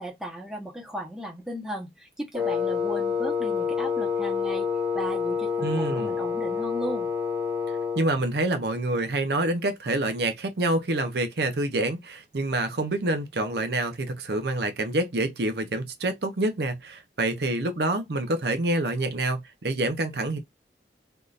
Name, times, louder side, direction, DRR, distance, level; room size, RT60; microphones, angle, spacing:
voice 1, 0.0-4.7 4.9-7.1, equal, 5° right, 0.9 m, -36 dB
Wind instrument woodwind instrument, 2.3-8.1, left 6 dB, 25° right, 1.1 m, -28 dB
voice 2, 5.6-6.1 8.0-20.4, right 2 dB, 65° right, 0.7 m, -27 dB
3.6 x 2.6 x 2.4 m
head